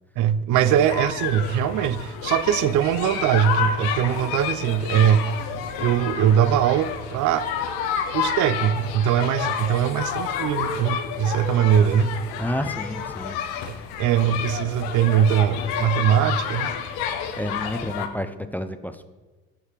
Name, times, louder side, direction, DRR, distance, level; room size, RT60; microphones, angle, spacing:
voice 1, 0.2-5.3 5.8-7.5 8.1-12.2 13.7-16.7, right 9 dB, 60° right, 0.4 m, -21 dB
sound 1, 0.5-18.1, left 8 dB, 80° left, 0.7 m, -30 dB
voice 2, 12.4-13.4 13.7-13.9 17.4-19.1, left 1 dB, 5° left, 0.3 m, -30 dB
6.6 x 5.7 x 3.0 m
hypercardioid pair, 60°, 36 cm